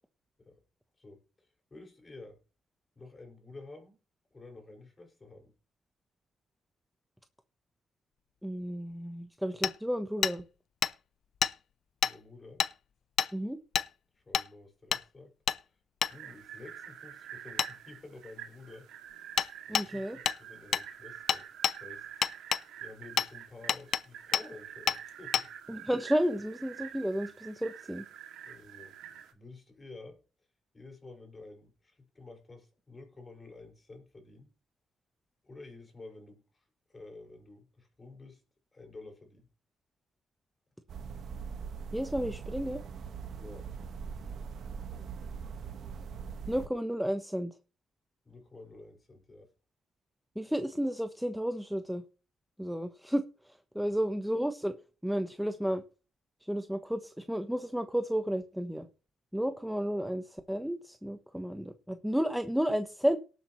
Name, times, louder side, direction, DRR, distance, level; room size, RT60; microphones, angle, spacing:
voice 1, 1.0-2.4 3.0-4.0 4.3-5.5 12.0-12.6 14.2-15.3 15.6-15.8 16.1-18.9 19.7-22.1 22.8-25.5 28.4-29.0 29.3-30.2 30.7-34.5 35.4-38.4 38.7-39.5 43.4-43.7 48.2-49.5 53.9-54.0, left 3 dB, 25° left, 2 dB, 5.6 m, -51 dB
voice 2, 8.4-10.4 13.3-13.6 19.7-20.2 25.7-28.0 41.9-42.8 46.5-47.5 50.4-52.0 52.6-53.2 53.7-54.7 55.0-55.8 56.5-58.9 59.3-63.2, equal, ahead, 7 dB, 1.0 m, -32 dB
Hammer, 9.6-9.7 10.2-10.4 10.8-10.9 11.4-11.5 12.0-12.1 12.6-12.7 13.2-13.3 13.7-13.9 14.3-14.5 14.9-15.0 15.5-15.6 16.0-16.1 17.6-17.7 19.4-19.5 19.7-19.9 20.3-20.4 20.7-20.9 21.3-21.8 22.2-22.6 23.2-23.3 23.7-24.0 24.3-24.5 24.9-25.0 25.3-25.5, left 9 dB, 65° left, 0.5 m, -28 dB
sound 1, 16.1-29.3, right 9 dB, 85° right, 2.4 m, -47 dB
sound 2, 40.9-46.7, right 6 dB, 65° right, 1.5 m, -41 dB
18.0 x 8.3 x 3.2 m, 0.35 s
cardioid pair, 90°, 0 cm